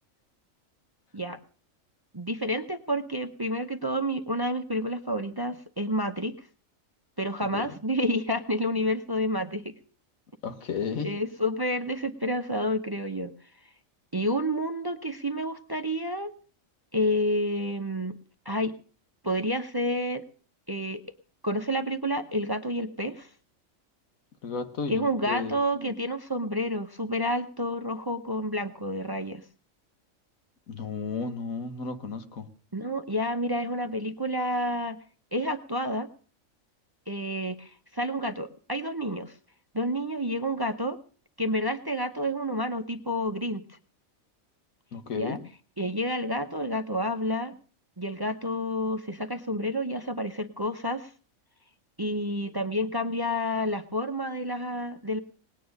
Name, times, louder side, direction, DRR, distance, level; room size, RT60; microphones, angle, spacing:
voice 1, 2.1-6.5 7.2-9.7 11.0-13.3 14.1-16.3 16.9-18.1 18.4-18.7 19.2-20.2 20.7-21.0 21.4-23.3 24.9-29.4 32.7-35.0 35.3-36.1 37.1-39.4 39.7-41.0 41.4-43.6 45.2-45.4 45.8-47.6 48.0-51.1 52.0-55.2, equal, 20° right, 0.7 m, -29 dB
voice 2, 10.4-11.1 24.4-25.5 30.7-32.5 44.9-45.4, left 5 dB, 80° left, 1.7 m, -33 dB
19.5 x 9.3 x 6.5 m
omnidirectional pair, 1.4 m